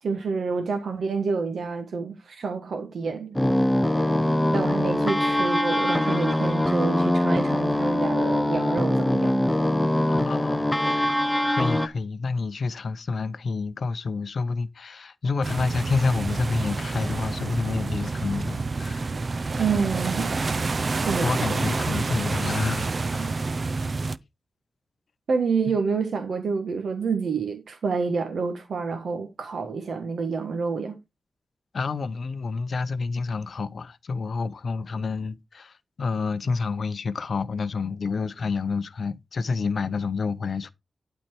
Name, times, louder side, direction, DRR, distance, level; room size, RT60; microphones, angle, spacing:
voice 1, 0.0-3.4 4.5-9.4 19.6-20.3 21.0-21.5 23.2-23.3 25.3-31.0, right 5 dB, 70° right, 1.5 m, -28 dB
sound 1, 3.3-11.9, left 1 dB, 5° left, 0.7 m, -23 dB
voice 2, 10.1-19.1 21.2-23.3 31.7-40.7, left 4 dB, 55° left, 0.7 m, -29 dB
sound 2, 15.4-24.2, right 3 dB, 40° right, 0.5 m, -28 dB
12.0 x 4.5 x 4.5 m
wide cardioid pair, 165°, 0 cm